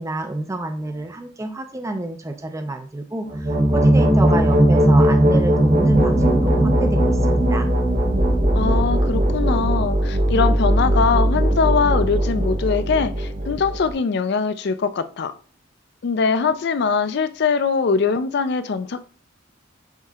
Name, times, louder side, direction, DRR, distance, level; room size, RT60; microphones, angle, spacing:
voice 1, 0.0-7.7, right 2 dB, 15° right, 6 dB, 0.4 m, -28 dB
sound 1, 3.3-13.9, right 1 dB, 40° right, 0.8 m, -18 dB
voice 2, 8.5-15.3 16.0-19.1, left 5 dB, 55° left, 11 dB, 0.4 m, -22 dB
7.3 x 2.8 x 2.4 m, 0.42 s
head